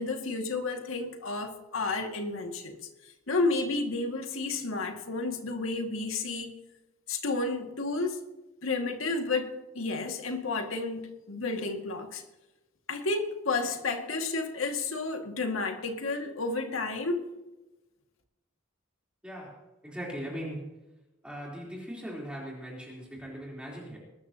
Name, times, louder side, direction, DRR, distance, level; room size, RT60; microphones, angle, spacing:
voice 1, 0.0-2.8 3.3-6.5 7.1-8.2 8.6-12.3 12.9-17.3, left 3 dB, 85° left, 2.1 m, -31 dB
voice 2, 19.2-20.8 21.2-24.0, equal, 5° right, 3.6 m, -40 dB
21.0 x 13.5 x 2.9 m
head